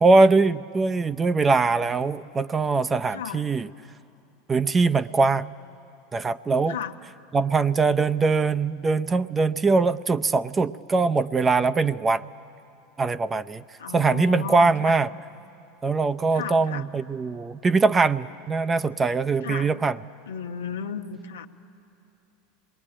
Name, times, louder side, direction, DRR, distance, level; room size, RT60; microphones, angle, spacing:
voice 1, 0.0-3.7 4.5-5.6 6.1-6.8 7.3-12.3 13.0-13.6 13.9-15.1 15.8-20.0, right 4 dB, 20° right, 13 dB, 0.6 m, -22 dB
voice 2, 3.1-3.4 6.7-6.9 13.8-15.0 16.3-16.9 19.4-19.8 20.3-21.5, left 7 dB, 90° left, 4 dB, 1.2 m, -34 dB
26.5 x 21.0 x 9.9 m, 2.7 s
hypercardioid pair, 95°, 0 cm